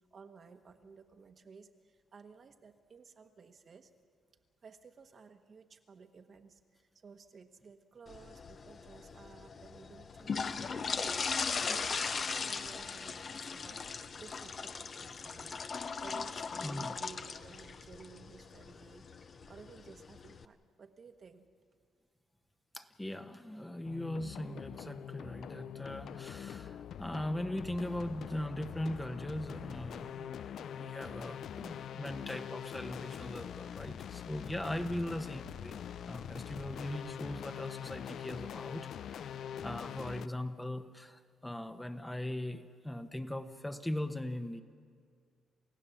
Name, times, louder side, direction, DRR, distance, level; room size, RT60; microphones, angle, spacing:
voice 1, 0.1-3.9 4.6-15.6 16.0-21.5, right 5 dB, 45° right, 6 dB, 1.3 m, -55 dB
sound 1, 8.1-20.4, left 5 dB, 45° left, 0.8 m, -39 dB
voice 2, 16.6-17.0 22.7-35.8 36.1-39.3 39.6-44.6, left 1 dB, 10° left, 7 dB, 1.0 m, -40 dB
sound 2, 23.8-40.3, left 9 dB, 65° left, 0.4 m, -44 dB
28.5 x 16.0 x 7.1 m, 2.1 s
cardioid pair, 90°, 0 cm